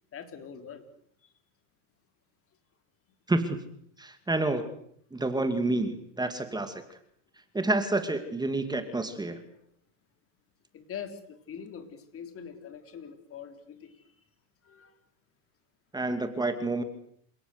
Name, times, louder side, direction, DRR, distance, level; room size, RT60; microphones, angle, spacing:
voice 1, 0.1-0.8 1.2-1.3 9.5-9.6 10.7-14.0 14.6-14.9, left 7 dB, 30° left, 8 dB, 3.7 m, -43 dB
voice 2, 3.3-3.6 4.0-4.7 5.1-7.0 7.5-9.4 15.9-16.8, right 2 dB, 10° right, 8 dB, 2.5 m, -29 dB
28.0 x 17.5 x 8.2 m, 0.67 s
supercardioid pair, 125°, 44 cm